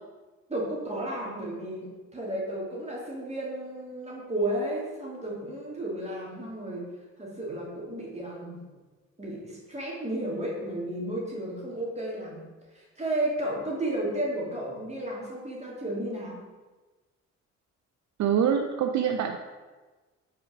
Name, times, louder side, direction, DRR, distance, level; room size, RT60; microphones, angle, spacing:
voice 1, 0.5-6.9 7.2-8.6 9.2-12.4 12.7-16.4, right 1 dB, 20° right, -3 dB, 2.4 m, -33 dB
voice 2, 18.2-19.4, right 8 dB, 65° right, 5 dB, 0.6 m, -25 dB
5.8 x 4.4 x 6.0 m, 1.3 s
cardioid pair, 90°, 30 cm